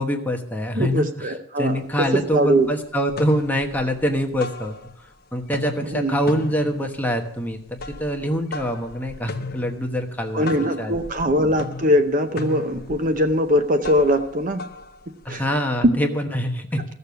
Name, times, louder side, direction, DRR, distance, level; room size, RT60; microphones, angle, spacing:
voice 1, 0.0-4.8 5.3-11.2 15.2-16.8, equal, 10° left, 3 dB, 1.1 m, -25 dB
voice 2, 0.7-2.7 5.9-6.2 10.3-14.7 15.3-15.4, equal, 35° right, 8 dB, 0.7 m, -21 dB
sound 1, 1.6-1.7 2.0-2.7 3.0-5.2 5.4-15.6, left 3 dB, 45° left, 0.9 m, -37 dB
15.5 x 6.8 x 6.9 m, 0.76 s
head